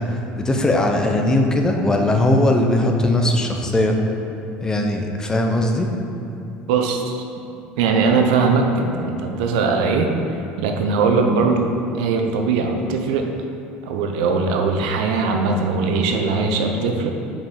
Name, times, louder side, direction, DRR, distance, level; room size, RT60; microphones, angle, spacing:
voice 1, 0.0-4.0 4.6-5.9, left 1 dB, 15° left, 2 dB, 0.7 m, -19 dB
voice 2, 6.7-7.2 7.8-10.1 10.6-13.3 13.8-17.1, right 4 dB, 85° right, 3 dB, 0.8 m, -20 dB
5.2 x 5.0 x 5.7 m, 2.9 s
supercardioid pair, 115°, 4 cm